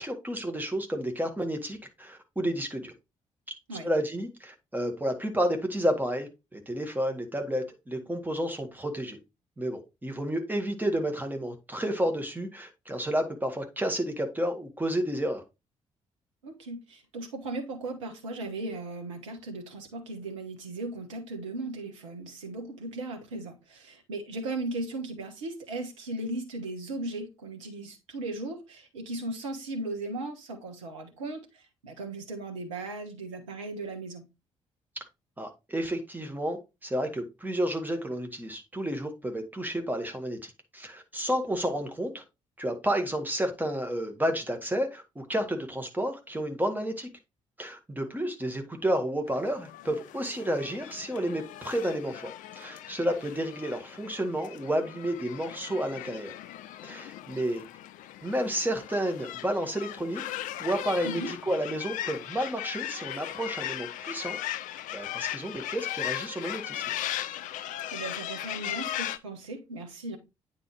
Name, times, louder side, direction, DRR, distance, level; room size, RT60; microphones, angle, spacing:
voice 1, 0.0-2.9 3.8-9.2 9.6-15.4 35.0-35.1 35.4-42.2 42.6-47.1 47.6-56.3 56.8-57.6 58.2-60.2 60.6-64.4 64.9-66.8, equal, 10° right, 1.8 m, -31 dB
voice 2, 16.4-34.2 61.0-61.3 67.9-70.2, right 2 dB, 75° right, 1.2 m, -37 dB
sound 1, 49.3-69.2, left 13 dB, 55° left, 0.4 m, -38 dB
9.0 x 4.4 x 3.2 m
figure-of-eight pair, 40°, 16 cm